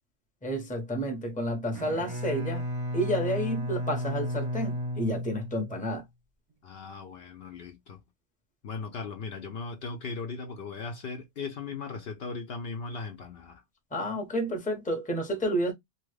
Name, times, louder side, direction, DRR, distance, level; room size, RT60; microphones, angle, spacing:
voice 1, 0.4-2.6 2.9-6.0 13.9-15.7, equal, 10° left, 0.7 m, -30 dB
Bowed string instrument, 1.7-6.0, equal, 35° right, 0.7 m, -33 dB
voice 2, 6.6-8.0 8.6-13.6, left 4 dB, 65° left, 0.8 m, -38 dB
2.9 x 2.3 x 3.2 m
omnidirectional pair, 1.2 m